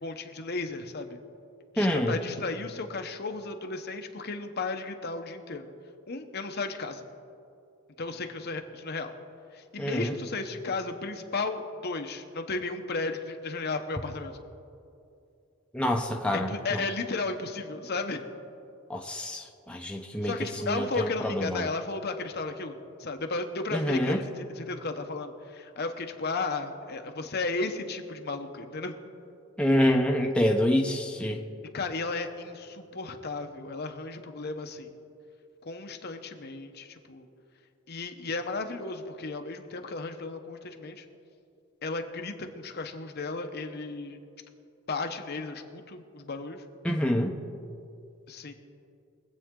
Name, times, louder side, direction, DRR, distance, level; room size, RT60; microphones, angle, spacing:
voice 1, 0.0-1.2 1.7-5.7 6.1-7.0 8.0-9.1 9.5-14.3 16.3-18.2 20.2-28.9 31.7-34.9 35.6-37.3 37.9-41.0 41.8-44.2 44.9-46.6 48.3-48.5, left 3 dB, 50° left, 6 dB, 0.9 m, -34 dB
voice 2, 1.8-2.2 9.8-10.1 15.7-16.8 18.9-20.3 20.6-21.7 23.7-24.2 29.6-31.4 46.8-47.3, equal, 5° left, 1 dB, 0.7 m, -26 dB
23.0 x 8.3 x 3.8 m, 2.6 s
head